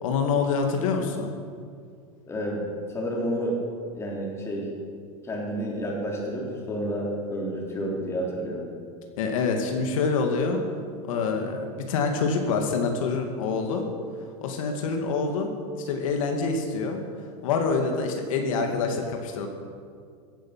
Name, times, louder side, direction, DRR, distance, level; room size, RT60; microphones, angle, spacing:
voice 1, 0.0-1.3 9.2-10.6 11.1-13.9 14.4-15.5 15.8-17.0 17.4-19.5, left 4 dB, 80° left, 3 dB, 2.2 m, -26 dB
voice 2, 2.2-3.6 3.9-4.7 5.2-8.7, equal, 15° left, -2 dB, 3.5 m, -30 dB
16.0 x 10.5 x 7.4 m, 2.2 s
supercardioid pair, 155°, 17 cm